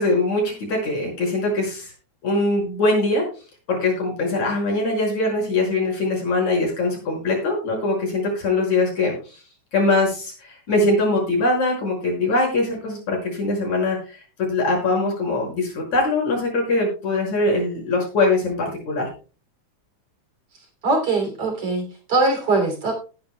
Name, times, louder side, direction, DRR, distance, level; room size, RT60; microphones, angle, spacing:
voice 1, 0.0-1.9 2.2-3.2 3.7-9.4 9.7-19.1, left 2 dB, 70° left, -1 dB, 7.0 m, -22 dB
voice 2, 20.8-22.9, right 3 dB, 50° right, 3 dB, 3.9 m, -21 dB
19.0 x 10.0 x 2.2 m, 0.35 s
omnidirectional pair, 3.4 m